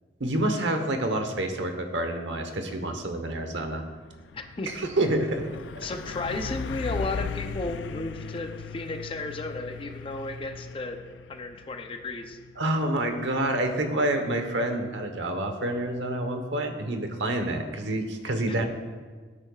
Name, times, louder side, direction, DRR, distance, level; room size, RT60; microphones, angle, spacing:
voice 1, 0.2-3.8 4.6-5.5 12.6-18.7, right 1 dB, 90° right, 5 dB, 1.1 m, -28 dB
Truck, 3.0-3.1 3.4-16.0, left 5 dB, 80° left, 0.4 m, -39 dB
voice 2, 4.3-4.9 5.8-11.0 11.3-12.4 18.5-18.6, left 2 dB, 30° left, 6 dB, 0.6 m, -34 dB
15.0 x 8.7 x 2.4 m, 1.5 s
head